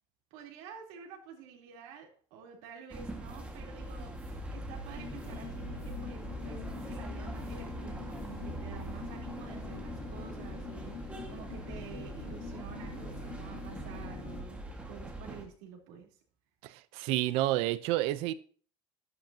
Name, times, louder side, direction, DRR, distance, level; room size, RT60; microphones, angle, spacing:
voice 1, 0.3-4.2 4.5-16.2, right 7 dB, 90° right, 3.7 m, -50 dB
sound 1, 2.9-15.5, right 1 dB, 10° right, 1.8 m, -42 dB
sound 2, 3.3-6.1 6.7-9.1, right 3 dB, 30° right, 6.2 m, -59 dB
sound 3, 5.0-14.4, left 5 dB, 35° left, 2.0 m, -44 dB
voice 2, 16.6-18.3, right 15 dB, 65° right, 0.8 m, -30 dB
12.0 x 11.0 x 2.9 m
cardioid pair, 175°, 11 cm